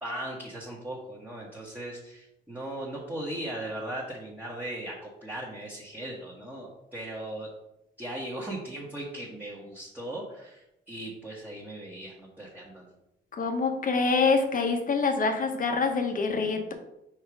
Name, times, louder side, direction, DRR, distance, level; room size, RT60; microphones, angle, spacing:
voice 1, 0.0-7.5 8.0-12.9, right 1 dB, 10° right, -4 dB, 1.3 m, -38 dB
voice 2, 13.3-16.7, left 4 dB, 45° left, 5 dB, 1.1 m, -26 dB
4.6 x 4.5 x 4.7 m, 0.86 s
cardioid pair, 90°, 20 cm